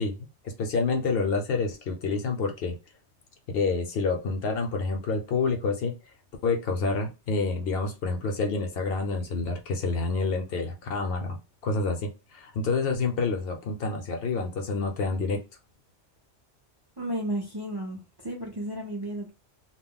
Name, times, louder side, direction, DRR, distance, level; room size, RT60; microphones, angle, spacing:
voice 1, 0.0-2.8 3.5-5.9 6.4-15.4, left 4 dB, 65° left, 0.8 m, -28 dB
voice 2, 17.0-19.3, right 1 dB, 30° right, 0.5 m, -33 dB
2.3 x 2.1 x 3.6 m
omnidirectional pair, 1.2 m